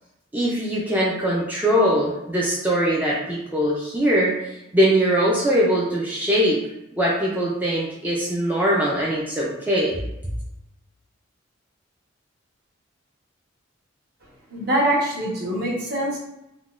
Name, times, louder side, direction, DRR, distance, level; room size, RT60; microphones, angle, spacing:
voice 1, 0.3-4.4 4.7-6.6 7.0-10.0, equal, 10° right, -5 dB, 0.4 m, -21 dB
voice 2, 14.5-16.2, right 1 dB, 50° right, -5 dB, 0.9 m, -23 dB
3.7 x 2.2 x 2.4 m, 0.89 s
head